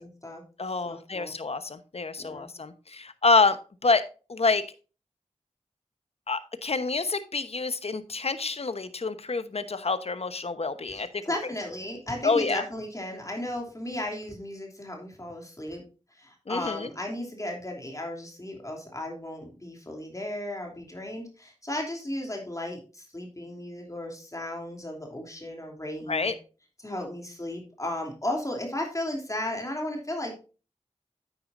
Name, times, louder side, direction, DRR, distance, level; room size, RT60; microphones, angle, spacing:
voice 1, 0.0-0.4 0.8-1.3 2.2-2.5 10.9-15.8 16.1-26.3 26.8-30.4, left 1 dB, 25° left, 1 dB, 2.9 m, -35 dB
voice 2, 0.6-3.6 3.8-4.0 4.3-4.6 6.3-11.2 12.2-12.6 16.5-16.9 26.1-26.3, left 4 dB, 60° left, 12 dB, 1.0 m, -27 dB
9.3 x 9.2 x 2.5 m, 0.34 s
cardioid pair, 45°, 12 cm